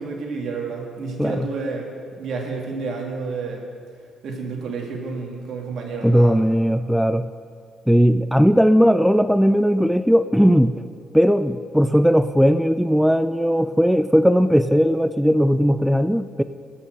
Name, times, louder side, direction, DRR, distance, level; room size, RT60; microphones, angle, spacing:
voice 1, 0.0-1.9 2.2-3.6 4.2-6.4, right 4 dB, 70° right, 1 dB, 2.0 m, -30 dB
voice 2, 6.0-7.3 7.9-10.7 11.1-16.4, equal, ahead, 12 dB, 0.3 m, -17 dB
14.0 x 5.6 x 6.4 m, 2.2 s
cardioid pair, 90°, 0 cm